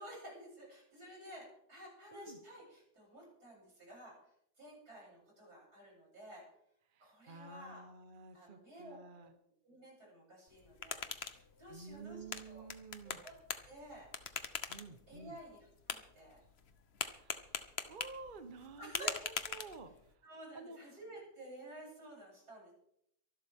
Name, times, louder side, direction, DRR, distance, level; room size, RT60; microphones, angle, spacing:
voice 1, 0.0-6.4 7.0-7.8 8.3-9.0 9.6-12.7 13.0-13.4 13.7-14.1 15.1-16.4 18.8-19.2 20.2-22.7, right 1 dB, 80° right, -4 dB, 8.7 m, -52 dB
voice 2, 6.9-9.3 11.7-13.2 14.7-15.4 17.2-17.6 17.9-20.2 20.5-20.8, right 4 dB, 35° right, 8 dB, 1.0 m, -51 dB
sound 1, 10.5-20.1, left 6 dB, 45° left, 1.1 m, -44 dB
24.0 x 11.5 x 3.6 m, 0.73 s
omnidirectional pair, 1.7 m